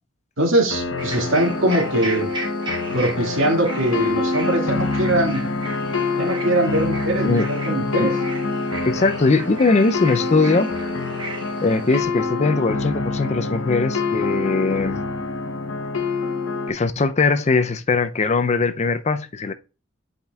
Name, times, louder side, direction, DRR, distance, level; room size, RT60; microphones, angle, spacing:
voice 1, 0.4-2.3 2.9-5.4 6.2-8.2, right 1 dB, 80° right, 2.1 m, -22 dB
sound 1, 0.7-16.7, left 3 dB, 90° left, 0.9 m, -26 dB
sound 2, 1.0-12.0, right 2 dB, 25° right, 1.4 m, -36 dB
voice 2, 8.9-10.7 11.6-15.0 16.7-19.5, left 3 dB, 35° left, 0.5 m, -20 dB
10.5 x 5.1 x 2.3 m
head